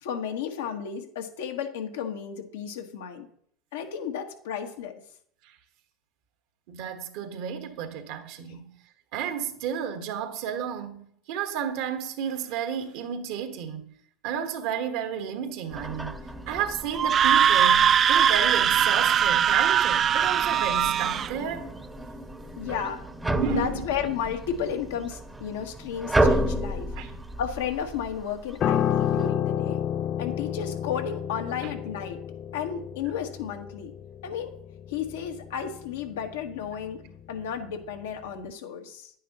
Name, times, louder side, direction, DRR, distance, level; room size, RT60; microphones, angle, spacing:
voice 1, 0.0-3.3 3.7-4.9 8.4-8.5 22.6-23.0 23.5-26.9 27.4-29.8 30.2-32.2 32.5-33.9 34.2-34.5 34.9-39.1, left 8 dB, 75° left, 1.4 m, -33 dB
voice 2, 6.7-8.7 9.1-13.9 14.2-16.2 16.5-21.6 23.3-23.8 27.0-27.2 31.6-31.7, right 7 dB, 65° right, 1.5 m, -32 dB
sound 1, 15.7-29.3, right 1 dB, 10° right, 0.9 m, -32 dB
Screaming, 16.9-21.3, right 9 dB, 40° right, 0.3 m, -21 dB
Piano, 28.6-38.0 38.3-38.5, left 10 dB, 45° left, 0.3 m, -31 dB
10.5 x 9.3 x 3.0 m
hypercardioid pair, 80°, 0 cm